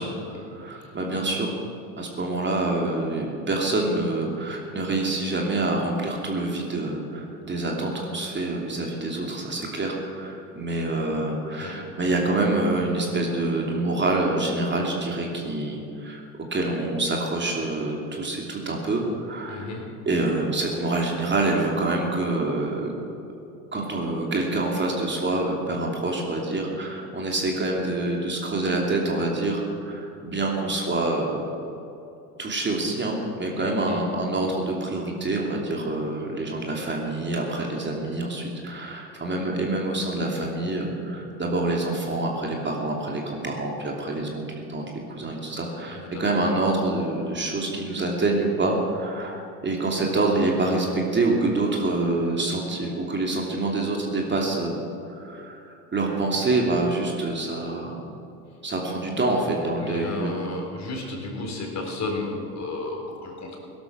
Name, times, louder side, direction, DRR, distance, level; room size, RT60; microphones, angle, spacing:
voice 1, 0.0-1.5 2.0-16.2 16.5-19.7 20.1-22.9 23.7-31.4 32.4-44.4 44.7-44.8 45.1-54.8 55.1-58.0 58.6-60.4, right 2 dB, 25° right, 0 dB, 2.8 m, -26 dB
voice 2, 19.5-19.9 33.5-34.0 45.9-46.3 59.8-63.6, left 3 dB, 35° left, 1 dB, 4.0 m, -33 dB
17.5 x 12.0 x 6.1 m, 2.7 s
hypercardioid pair, 80°, 47 cm